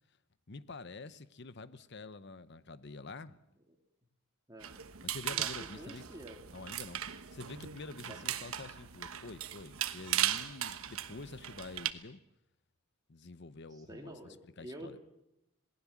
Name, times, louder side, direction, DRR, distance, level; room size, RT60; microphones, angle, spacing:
voice 1, 0.5-3.4 5.0-6.1 6.5-12.2 13.1-15.0, left 3 dB, 55° left, 0.9 m, -47 dB
sound 1, 4.6-11.9, right 11 dB, 80° right, 1.2 m, -38 dB
voice 2, 5.3-6.4 8.1-8.2 13.7-15.0, right 1 dB, 20° right, 3.1 m, -48 dB
27.0 x 18.5 x 7.4 m
head